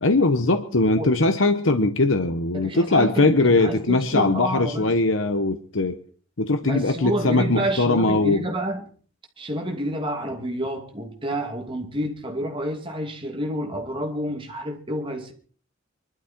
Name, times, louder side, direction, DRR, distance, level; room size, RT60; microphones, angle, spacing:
voice 1, 0.0-6.0 6.4-8.4, left 2 dB, 80° left, 1.1 m, -20 dB
voice 2, 2.5-4.9 6.6-8.8 9.4-15.3, right 1 dB, 25° right, 2.7 m, -29 dB
24.0 x 12.5 x 4.5 m
head